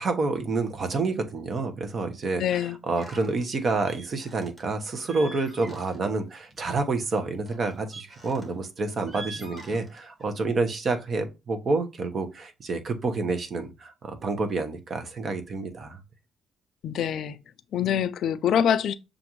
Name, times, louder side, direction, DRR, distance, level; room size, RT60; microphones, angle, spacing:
voice 1, 0.0-16.0, right 3 dB, 45° right, 1.0 m, -28 dB
voice 2, 2.4-2.8 16.8-17.4 17.7-18.9, left 9 dB, 70° left, 0.4 m, -25 dB
sound 1, 3.0-3.4 3.9-4.6 4.9-6.2 6.5-6.7 7.5-8.6 9.0-10.3, right 2 dB, 20° right, 1.6 m, -44 dB
6.7 x 2.5 x 3.0 m
cardioid pair, 90°, 0 cm